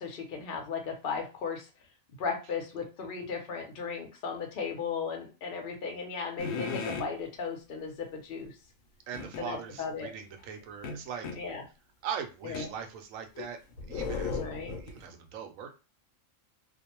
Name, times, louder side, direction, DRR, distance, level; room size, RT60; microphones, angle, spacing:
voice 1, 0.0-1.7 2.2-8.5 9.4-10.1 11.4-11.6 12.4-12.7 14.3-14.8, left 5 dB, 50° left, 2 dB, 0.8 m, -36 dB
sound 1, 6.4-7.1 9.1-9.4 10.8-11.4 12.5-12.7 13.4-15.0, left 4 dB, 85° left, 1.0 m, -35 dB
voice 2, 9.1-11.3 12.0-13.6 13.9-15.7, right 7 dB, 80° right, 5 dB, 1.0 m, -40 dB
2.5 x 2.1 x 2.9 m, 0.31 s
omnidirectional pair, 1.4 m